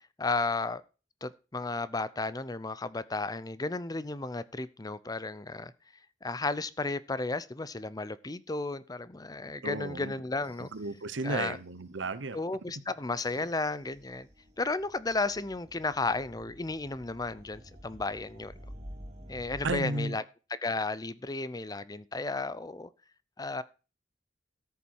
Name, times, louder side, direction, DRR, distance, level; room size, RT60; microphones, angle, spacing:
voice 1, 0.2-0.8 1.2-5.7 6.2-10.7 11.2-11.6 12.3-14.3 14.6-18.5 19.3-20.2 20.5-22.9 23.4-23.6, left 3 dB, 20° left, 0.6 m, -33 dB
voice 2, 9.6-10.1 10.6-12.4 19.6-20.2, right 2 dB, 85° right, 1.0 m, -34 dB
sound 1, 10.4-11.6 13.1-19.8, equal, 40° right, 2.9 m, -50 dB
13.5 x 7.1 x 4.6 m
head